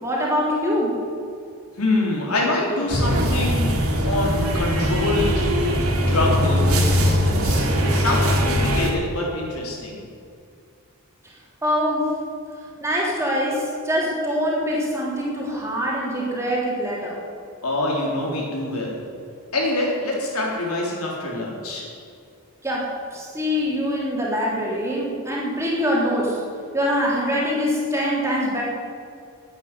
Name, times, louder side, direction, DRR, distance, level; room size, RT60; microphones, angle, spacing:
voice 1, 0.0-0.9 11.6-12.0 12.8-17.2 22.6-26.4 26.7-28.6, equal, 15° right, -5 dB, 3.6 m, -24 dB
voice 2, 1.8-3.8 4.0-5.5 6.1-7.6 7.9-10.0 17.6-19.0 19.5-21.9, left 2 dB, 90° left, -2 dB, 4.0 m, -25 dB
sound 1, 2.9-8.9, equal, 80° right, 2.6 m, -20 dB
12.0 x 9.0 x 9.6 m, 2.3 s
head